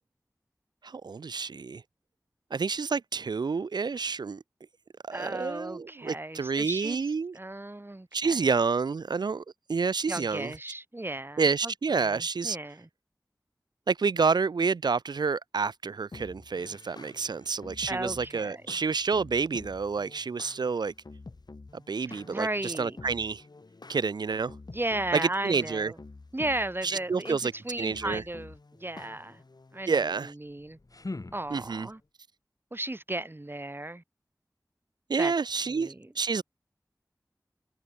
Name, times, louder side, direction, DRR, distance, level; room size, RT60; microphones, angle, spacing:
voice 1, 0.8-1.8 2.5-4.4 5.0-7.4 8.1-9.4 9.7-10.5 11.4-12.6 13.9-20.9 21.9-23.4 23.9-24.6 25.1-25.9 26.8-27.5 27.8-28.2 29.9-30.3 31.5-31.9 35.1-36.4, right 5 dB, 90° right, 0.4 m, -29 dB
voice 2, 5.1-7.0 7.3-8.4 10.1-12.9 17.9-18.8 22.1-23.0 24.7-26.0 26.3-29.4 29.7-30.8 31.3-32.0 32.7-34.0 35.2-35.3 35.7-36.1, right 1 dB, 30° right, 2.2 m, -35 dB
sound 1, 16.1-29.8, left 3 dB, 75° left, 4.2 m, -49 dB
sound 2, 30.4-32.1, left 2 dB, 55° left, 2.5 m, -42 dB
wide cardioid pair, 50°, 7 cm